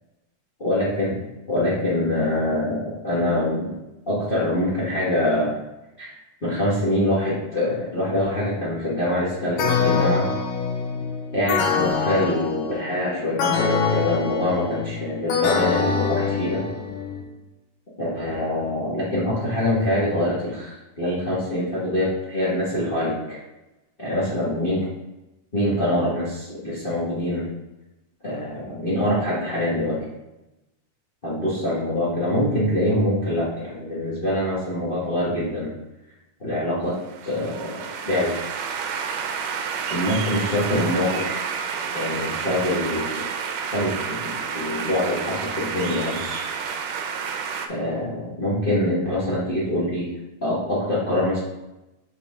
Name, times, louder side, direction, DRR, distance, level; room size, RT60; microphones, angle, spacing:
voice 1, 0.6-1.2 1.5-3.7 4.1-5.5 6.0-10.3 11.3-16.6 18.0-23.4 24.0-24.9 25.5-27.5 28.2-30.0 31.2-35.7 36.4-37.0 37.2-38.6 39.9-41.5 41.9-43.2 43.7-46.2 47.7-50.1 50.4-51.4, left 1 dB, 70° left, -8 dB, 0.5 m, -24 dB
sound 1, 9.6-17.2, left 5 dB, 85° left, 2.3 m, -24 dB
sound 2, 37.0-47.7, right 6 dB, 90° right, 2.2 m, -30 dB
6.7 x 4.4 x 3.6 m, 0.99 s
omnidirectional pair, 3.7 m